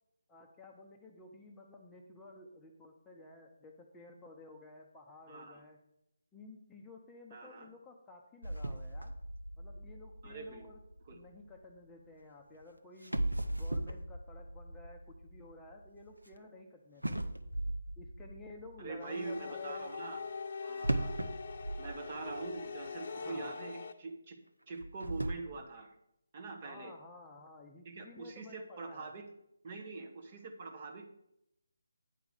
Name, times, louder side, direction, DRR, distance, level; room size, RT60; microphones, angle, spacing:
voice 1, 0.3-5.8 6.3-9.1 9.6-10.8 11.1-13.2 13.5-17.3 18.0-19.9 23.2-23.5 26.6-29.1, left 3 dB, 10° left, 0 dB, 0.7 m, -53 dB
voice 2, 5.3-5.6 7.3-7.7 10.2-10.7 11.1-11.2 18.8-20.2 20.6-21.2 21.8-24.4 24.7-26.0 26.3-26.9 27.8-29.3 29.6-31.1, right 3 dB, 35° right, 4 dB, 1.2 m, -44 dB
sound 1, 8.4-11.6 12.5-12.6 13.0-16.4 17.0-18.9 20.8-22.6 22.9-23.0 23.6-23.7 24.7-25.4, right 1 dB, 85° right, 0.8 m, -38 dB
sound 2, 19.0-23.9, left 5 dB, 45° left, 0.8 m, -43 dB
9.2 x 4.8 x 6.4 m, 0.79 s
figure-of-eight pair, 150°, 0 cm